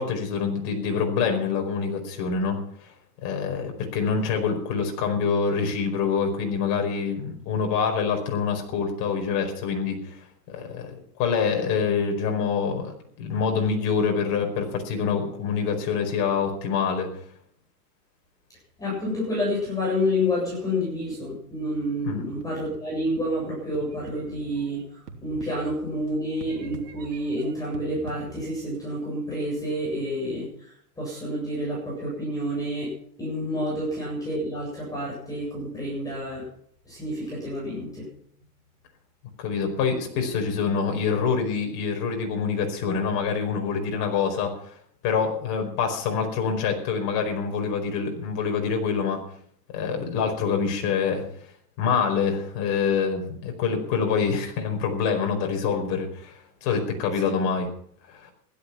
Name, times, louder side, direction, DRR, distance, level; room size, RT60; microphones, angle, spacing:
voice 1, 0.0-2.6 3.2-10.2 10.5-17.1 22.1-22.2 39.4-44.5 45.0-49.2 49.7-51.2 51.8-57.7 58.1-58.3, left 6 dB, 40° left, 3 dB, 4.9 m, -26 dB
voice 2, 18.8-32.9 33.2-36.5 36.8-38.1, equal, 5° left, -4 dB, 7.8 m, -29 dB
sound 1, 22.4-23.2 23.7-26.1 26.4-28.8, right 5 dB, 75° right, 3.0 m, -45 dB
16.0 x 12.5 x 5.9 m, 0.63 s
supercardioid pair, 150°, 47 cm